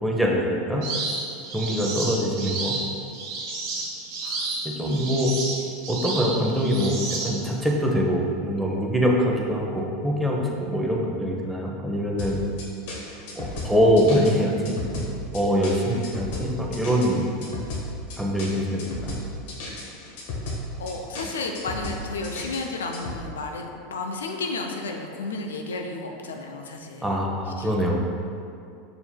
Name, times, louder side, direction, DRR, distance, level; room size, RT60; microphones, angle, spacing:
voice 1, 0.0-0.8 1.5-2.8 4.2-5.3 5.9-12.4 13.3-17.3 18.2-19.2 27.0-28.1, equal, 5° right, -2 dB, 0.7 m, -24 dB
sound 1, 0.8-7.7, right 3 dB, 55° right, 1.1 m, -31 dB
sound 2, 12.2-23.2, left 2 dB, 65° left, 1.0 m, -35 dB
voice 2, 20.8-27.1 27.6-27.7, left 3 dB, 85° left, 3 dB, 0.4 m, -32 dB
5.4 x 4.4 x 2.2 m, 2.4 s
hypercardioid pair, 90°, 0 cm